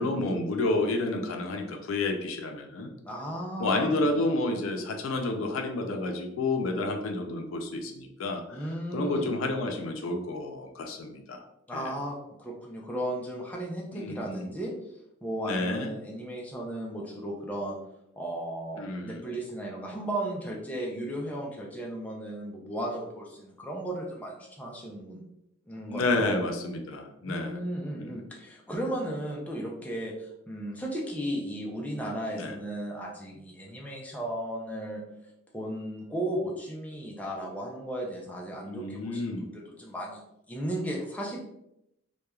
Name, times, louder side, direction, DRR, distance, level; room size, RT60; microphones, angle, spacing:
voice 1, 0.0-2.9 3.6-11.4 11.7-11.9 13.9-14.5 15.4-15.9 18.8-19.2 25.9-27.6 28.0-28.2 32.3-32.6 38.7-39.5, left 2 dB, 90° left, 4 dB, 0.4 m, -30 dB
voice 2, 3.0-4.2 8.5-9.3 11.7-14.7 15.2-17.8 18.2-25.2 25.7-26.4 27.2-35.0 35.5-40.2 40.5-41.4, right 1 dB, 10° left, -2 dB, 0.4 m, -35 dB
3.0 x 2.2 x 2.3 m, 0.81 s
head